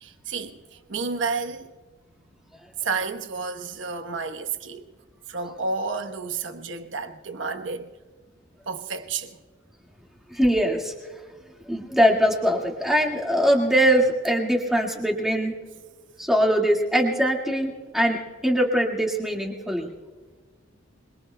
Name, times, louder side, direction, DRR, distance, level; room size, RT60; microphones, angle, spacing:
voice 1, 0.0-1.7 2.8-4.8 5.3-7.9 8.7-9.4, right 4 dB, 75° right, 1.1 m, -31 dB
voice 2, 10.3-10.9 11.7-15.6 16.2-19.9, equal, ahead, 1.9 m, -22 dB
26.0 x 22.5 x 2.2 m
head